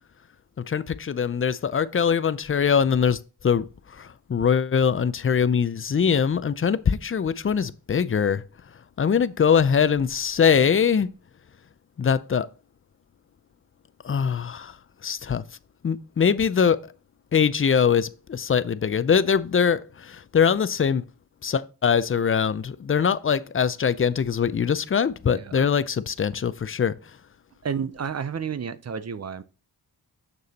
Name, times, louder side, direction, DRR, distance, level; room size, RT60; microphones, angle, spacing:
voice 1, 0.7-3.2 3.4-3.6 4.0-8.4 9.0-11.1 12.0-12.5 14.0-14.7 15.0-15.4 15.8-16.9 17.3-21.0 21.4-27.0, left 7 dB, 35° left, 0.5 m, -22 dB
voice 2, 25.3-25.7 27.6-29.4, right 6 dB, 40° right, 0.6 m, -31 dB
6.9 x 6.5 x 2.8 m
wide cardioid pair, 85°, 40 cm